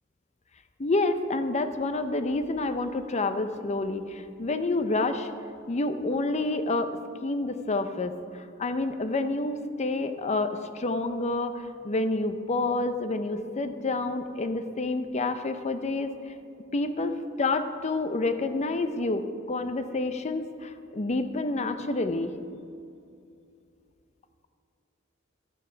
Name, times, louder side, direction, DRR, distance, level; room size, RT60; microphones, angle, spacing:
voice 1, 0.8-5.3 5.7-6.9 7.2-16.2 16.7-22.3, left 2 dB, 35° left, 9 dB, 0.6 m, -28 dB
12.0 x 8.4 x 5.1 m, 2.4 s
head